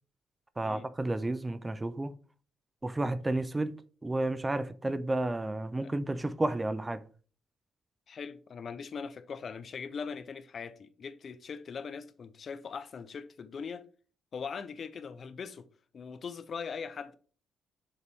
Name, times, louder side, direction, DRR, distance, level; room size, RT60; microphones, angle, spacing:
voice 1, 0.6-2.1 2.8-7.0, right 2 dB, 20° right, 0.4 m, -32 dB
voice 2, 8.1-13.8 14.3-15.7 15.9-17.2, left 6 dB, 50° left, 0.6 m, -41 dB
6.9 x 4.1 x 3.4 m
cardioid pair, 90°, 0 cm